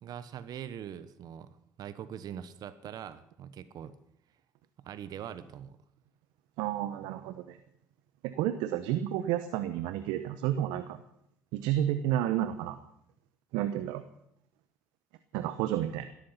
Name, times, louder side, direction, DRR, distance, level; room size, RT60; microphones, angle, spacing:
voice 1, 0.0-3.9 4.8-5.8, right 9 dB, 60° right, 14 dB, 1.2 m, -43 dB
voice 2, 6.6-7.6 8.2-11.0 11.5-12.8 13.5-14.0 15.3-16.1, right 12 dB, 80° right, 11 dB, 1.0 m, -31 dB
17.0 x 13.5 x 5.8 m, 0.74 s
supercardioid pair, 65°, 7 cm